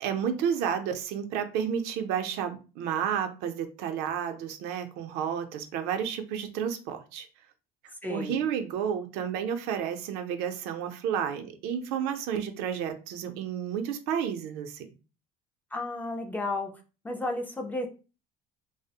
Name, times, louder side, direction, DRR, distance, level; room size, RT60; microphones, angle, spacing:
voice 1, 0.0-7.3 8.1-14.9, right 8 dB, 85° right, 6 dB, 0.5 m, -31 dB
voice 2, 8.0-8.4 15.7-16.7 17.0-17.9, left 2 dB, 10° left, 3 dB, 0.3 m, -32 dB
2.5 x 2.0 x 2.7 m, 0.33 s
cardioid pair, 155°, 16 cm